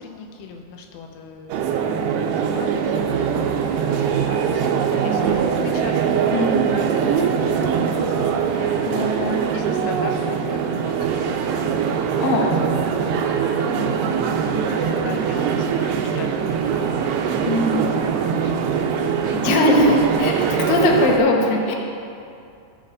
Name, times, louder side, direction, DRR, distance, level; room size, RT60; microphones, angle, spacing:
voice 1, 0.0-3.6 3.9-8.1 8.9-11.7 12.4-12.5 14.0-14.5 14.9-16.8 18.2-19.7, left 4 dB, 90° left, 2 dB, 3.3 m, -39 dB
sound 1, 1.5-21.2, right 7 dB, 90° right, 2.4 m, -22 dB
sound 2, 3.7-10.0, right 3 dB, 65° right, 2.4 m, -43 dB
voice 2, 6.3-6.8 8.5-9.4 12.2-12.6 13.7-15.2 17.4-17.9 19.3-21.8, left 2 dB, 70° left, -1 dB, 2.3 m, -22 dB
16.5 x 7.7 x 2.5 m, 2.5 s
omnidirectional pair, 5.5 m